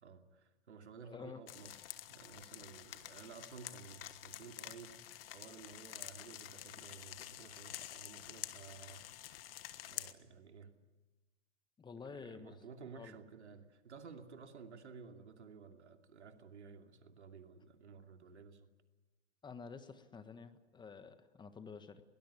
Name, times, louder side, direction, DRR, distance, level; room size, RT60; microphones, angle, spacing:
voice 1, 0.0-1.8 2.1-9.5 9.8-10.7 12.0-18.7, right 5 dB, 85° right, 6 dB, 2.7 m, -54 dB
voice 2, 1.0-1.4 11.8-12.5 12.9-13.2 19.4-22.0, left 5 dB, 15° left, 10 dB, 1.4 m, -50 dB
sound 1, 1.5-10.1, left 13 dB, 60° left, 1.5 m, -49 dB
22.0 x 19.0 x 9.8 m, 1.2 s
hypercardioid pair, 120°, 34 cm